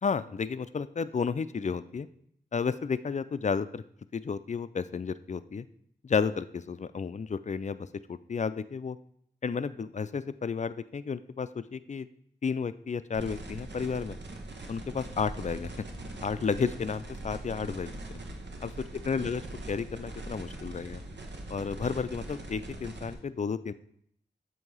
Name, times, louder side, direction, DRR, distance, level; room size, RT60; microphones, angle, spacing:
voice 1, 0.0-2.1 2.5-3.8 4.1-5.7 6.0-9.0 9.4-12.1 12.4-14.2 14.7-15.7 16.2-18.2 18.6-18.7 19.1-19.4 19.7-21.0 21.5-23.7, left 5 dB, 40° left, 14 dB, 0.4 m, -32 dB
sound 1, 13.1-23.1, right 2 dB, 80° right, 1.0 m, -42 dB
7.8 x 2.8 x 5.5 m, 0.66 s
cardioid pair, 45°, 18 cm